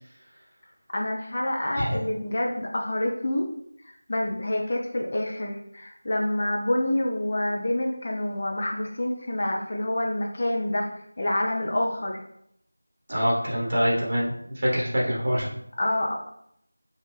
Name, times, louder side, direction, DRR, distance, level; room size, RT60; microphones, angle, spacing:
voice 1, 0.9-3.5 4.1-10.9 11.2-12.2 15.8-16.1, left 1 dB, 35° left, 0 dB, 0.5 m, -27 dB
voice 2, 13.1-15.5, equal, 35° right, -4 dB, 1.1 m, -25 dB
4.1 x 2.4 x 3.2 m, 0.74 s
figure-of-eight pair, 175°, 0 cm